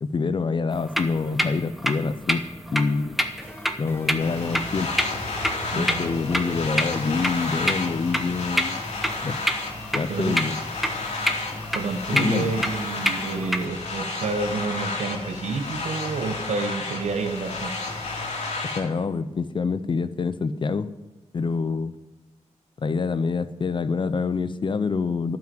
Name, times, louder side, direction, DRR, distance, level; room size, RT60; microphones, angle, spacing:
voice 1, 0.0-3.2 3.8-5.0 5.8-8.8 9.2-9.4 9.9-10.6 12.1-12.5 18.8-20.9 21.3-21.9 22.8-25.4, left 4 dB, 45° left, 13 dB, 0.5 m, -26 dB
sound 1, 0.7-13.6, equal, ahead, 0.9 m, -29 dB
sound 2, 3.4-7.9, left 1 dB, 20° left, 1.8 m, -40 dB
sound 3, 4.2-18.8, left 3 dB, 65° left, 2.7 m, -32 dB
voice 2, 10.1-10.4 11.7-17.9, right 3 dB, 70° right, 5 dB, 1.0 m, -29 dB
12.5 x 5.9 x 9.1 m, 1.1 s
wide cardioid pair, 115°, 12 cm